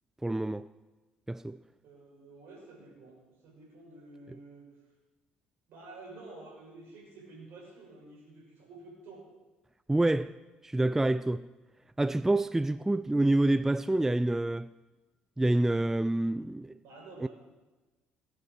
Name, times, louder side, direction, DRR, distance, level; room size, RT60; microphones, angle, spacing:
voice 1, 0.2-0.7 1.3-1.6 9.9-10.3 10.6-11.5 12.0-14.7 15.4-16.8 17.2-17.3, right 2 dB, 10° right, 0.4 m, -27 dB
voice 2, 1.8-4.7 5.7-9.3 16.8-17.3, right 2 dB, 60° right, 6.1 m, -50 dB
18.5 x 9.8 x 6.2 m
figure-of-eight pair, 50°, 5 cm